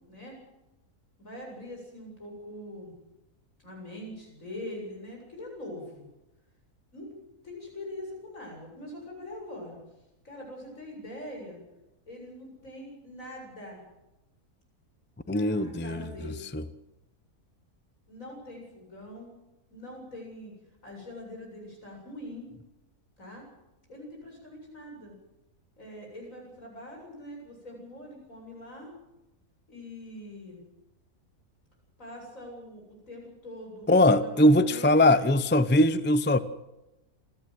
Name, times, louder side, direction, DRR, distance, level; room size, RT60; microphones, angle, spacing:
voice 1, 1.2-2.9 3.6-6.1 6.9-7.1 7.4-9.8 10.2-11.6 12.1-13.8 15.2-16.5 18.1-19.3 19.7-20.5 20.8-22.5 23.2-23.4 23.9-25.1 25.8-28.9 29.7-30.6 32.0-35.1, left 1 dB, 55° left, 0 dB, 8.3 m, -43 dB
voice 2, 15.3-16.6 33.9-36.4, left 1 dB, 15° left, 13 dB, 0.4 m, -22 dB
27.5 x 14.5 x 7.9 m, 0.97 s
omnidirectional pair, 1.6 m